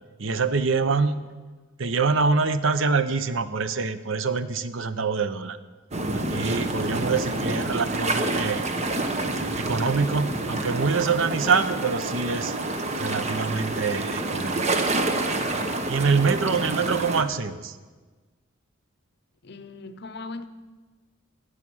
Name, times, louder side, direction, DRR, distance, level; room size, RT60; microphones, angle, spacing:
voice 1, 0.2-1.2 1.8-5.6 6.1-8.6 9.6-12.5 13.0-14.7 15.9-17.7, right 4 dB, 70° right, 0.8 m, -25 dB
sound 1, 5.9-17.2, right 2 dB, 35° right, 1.1 m, -28 dB
voice 2, 6.3-7.3 16.2-16.6 19.4-20.5, left 2 dB, 55° left, 0.8 m, -40 dB
16.0 x 9.8 x 6.3 m
head